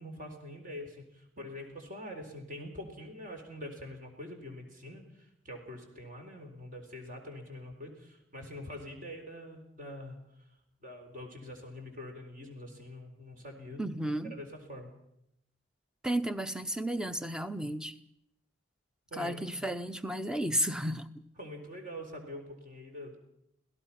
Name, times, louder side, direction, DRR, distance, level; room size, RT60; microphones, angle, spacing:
voice 1, 0.0-10.2 10.8-13.8 14.3-14.9 19.1-19.5 21.4-23.2, left 1 dB, 40° right, 3 dB, 4.1 m, -45 dB
voice 2, 13.8-14.4 16.0-17.9 19.1-21.1, right 1 dB, 5° right, 11 dB, 0.7 m, -33 dB
26.5 x 17.5 x 5.8 m, 0.79 s
head